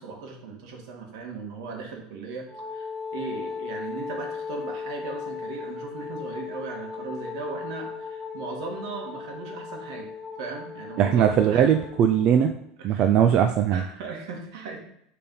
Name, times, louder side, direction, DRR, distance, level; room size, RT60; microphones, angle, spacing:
voice 1, 0.0-10.1 10.4-11.8 12.8-13.1 13.7-14.8, right 4 dB, 70° right, 2 dB, 1.8 m, -37 dB
Wind instrument woodwind instrument, 2.5-12.5, left 5 dB, ahead, 0.9 m, -37 dB
voice 2, 11.0-12.5 12.8-13.8, right 9 dB, 40° right, 7 dB, 0.4 m, -20 dB
6.7 x 3.5 x 5.3 m, 0.71 s
supercardioid pair, 155°, 3 cm